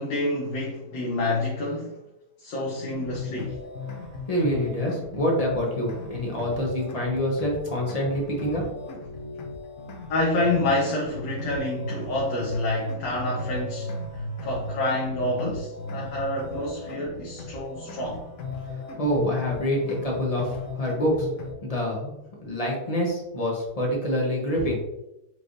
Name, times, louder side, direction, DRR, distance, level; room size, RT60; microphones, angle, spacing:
voice 1, 0.0-2.0 2.4-3.6 10.1-18.2, left 2 dB, 85° left, -4 dB, 1.4 m, -28 dB
sound 1, 2.9-21.5, left 2 dB, 65° left, 1.0 m, -36 dB
voice 2, 4.3-8.6 18.7-21.3 21.6-24.8, equal, 35° left, -2 dB, 0.6 m, -26 dB
4.4 x 3.2 x 2.5 m, 0.89 s
omnidirectional pair, 1.8 m